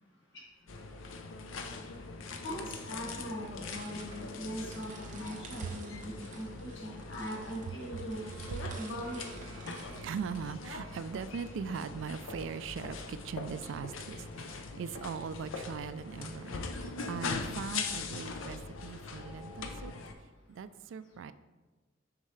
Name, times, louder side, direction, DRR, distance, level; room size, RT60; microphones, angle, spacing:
sound 1, 0.7-20.1, left 3 dB, 85° left, 0.6 m, -42 dB
voice 1, 2.4-8.2 8.7-9.2, equal, 65° left, -3 dB, 1.8 m, -40 dB
sound 2, 3.7-9.8, right 4 dB, 40° right, 1.0 m, -53 dB
voice 2, 8.3-19.9 20.5-21.3, right 6 dB, 70° right, 14 dB, 0.3 m, -40 dB
7.4 x 5.5 x 3.2 m, 1.2 s
head